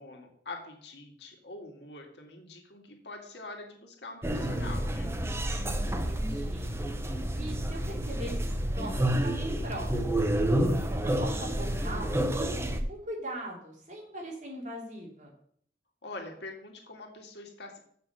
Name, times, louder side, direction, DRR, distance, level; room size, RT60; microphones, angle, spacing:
voice 1, 0.0-5.2 16.0-17.8, left 2 dB, 75° left, 2 dB, 2.0 m, -45 dB
sound 1, 4.2-12.8, right 1 dB, 15° right, 0.8 m, -29 dB
voice 2, 5.5-6.7 7.3-8.3 8.7-10.2 10.8-15.3, right 1 dB, 45° right, -2 dB, 3.2 m, -41 dB
7.0 x 6.1 x 7.6 m, 0.63 s
head